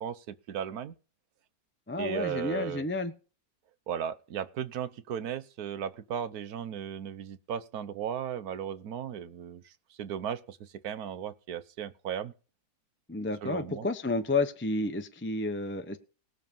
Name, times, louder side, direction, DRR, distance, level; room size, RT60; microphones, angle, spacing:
voice 1, 0.0-0.9 2.0-2.8 3.9-9.7 10.0-12.3 13.4-13.9, right 8 dB, 65° right, 1.3 m, -36 dB
voice 2, 1.9-3.1 13.1-16.0, left 2 dB, 10° left, 0.8 m, -31 dB
18.5 x 7.4 x 5.5 m
omnidirectional pair, 1.8 m